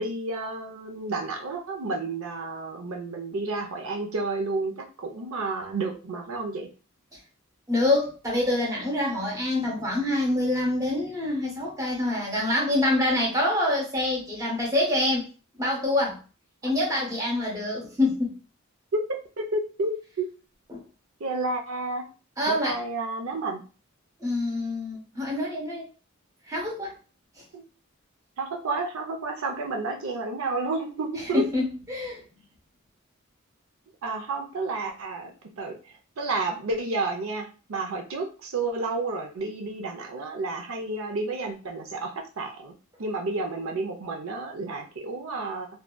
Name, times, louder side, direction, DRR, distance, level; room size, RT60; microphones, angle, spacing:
voice 1, 0.0-6.7 18.9-20.3 21.2-22.0 22.5-23.6 27.5-27.6 28.4-31.5 34.0-42.7 43.0-45.7, right 3 dB, 75° right, 2 dB, 0.6 m, -31 dB
voice 2, 7.7-15.3 15.6-16.2 16.6-18.4 20.7-20.8 22.4-22.8 24.2-25.9 26.5-27.0 31.3-32.2, left 1 dB, 15° right, -2 dB, 0.7 m, -26 dB
2.6 x 2.2 x 2.2 m, 0.35 s
head